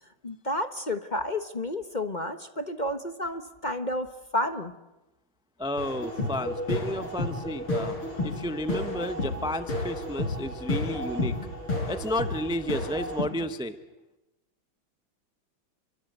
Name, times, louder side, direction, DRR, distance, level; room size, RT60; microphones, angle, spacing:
voice 1, 0.2-4.7, left 1 dB, 30° left, 8 dB, 1.0 m, -31 dB
voice 2, 5.6-8.0 8.2-11.4 11.9-13.8, left 1 dB, 5° right, 9 dB, 0.6 m, -32 dB
sound 1, 5.8-13.2, left 2 dB, 85° left, 7.4 m, -31 dB
29.5 x 24.0 x 8.2 m, 1.0 s
omnidirectional pair, 2.3 m